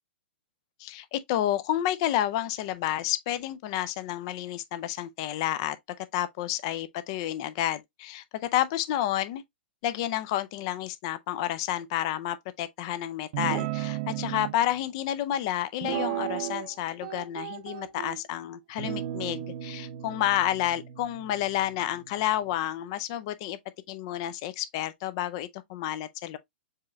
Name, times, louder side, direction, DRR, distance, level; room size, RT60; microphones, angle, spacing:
voice 1, 0.8-5.8 6.1-9.4 9.8-23.6 23.9-26.4, left 12 dB, 25° left, 0.3 m, -30 dB
Guitar, 13.3-14.5 15.8-16.7 17.0-18.2 18.8-22.3, right 13 dB, 30° right, 0.5 m, -35 dB
7.3 x 3.0 x 2.2 m
hypercardioid pair, 175°, 6 cm